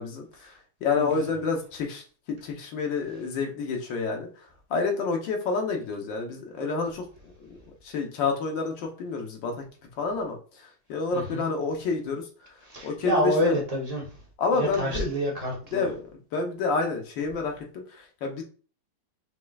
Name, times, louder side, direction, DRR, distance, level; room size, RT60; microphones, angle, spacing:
voice 1, 0.0-2.0 2.3-7.6 7.8-9.6 10.0-12.3 12.8-13.6 14.4-15.1 15.7-18.4, left 4 dB, 70° left, 2 dB, 1.5 m, -29 dB
voice 2, 11.1-11.5 12.6-14.1 14.5-15.9, equal, 35° right, -2 dB, 0.5 m, -28 dB
5.3 x 3.6 x 2.3 m, 0.39 s
omnidirectional pair, 2.2 m